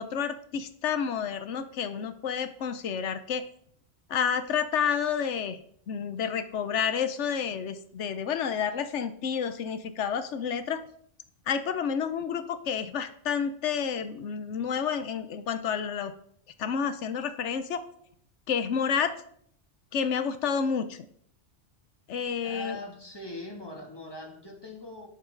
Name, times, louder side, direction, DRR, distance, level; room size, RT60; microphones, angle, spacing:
voice 1, 0.0-3.4 4.1-5.6 5.9-10.8 11.5-16.1 16.6-17.8 18.5-19.1 19.9-21.1 22.1-22.8, left 7 dB, 90° left, 1.1 m, -30 dB
voice 2, 22.4-25.1, left 1 dB, 20° left, 2.6 m, -41 dB
12.5 x 10.5 x 3.9 m
omnidirectional pair, 1.2 m